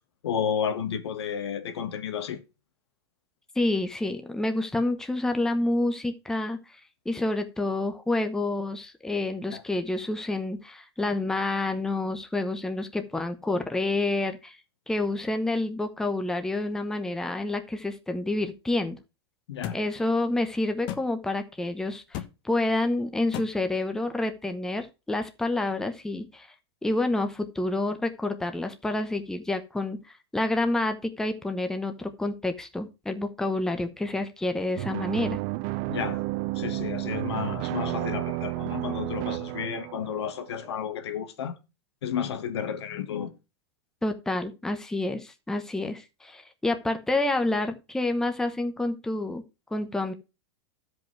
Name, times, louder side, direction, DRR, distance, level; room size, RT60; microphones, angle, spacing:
voice 1, 0.2-2.4 9.5-9.6 19.5-19.8 35.9-36.2 36.5-41.6 42.0-43.3, left 8 dB, 90° left, 1.5 m, -32 dB
voice 2, 3.6-6.6 7.0-14.6 14.9-19.0 19.7-26.5 26.8-30.0 30.3-35.4 44.0-49.4 49.7-50.1, left 2 dB, 5° left, 0.9 m, -28 dB
sound 1, 19.6-19.8 20.9-21.0 22.1-22.3 23.3-23.5, left 12 dB, 40° left, 1.1 m, -33 dB
sound 2, 34.8-40.5, right 20 dB, 40° right, 0.4 m, -31 dB
12.5 x 5.4 x 4.6 m
supercardioid pair, 150°, 14 cm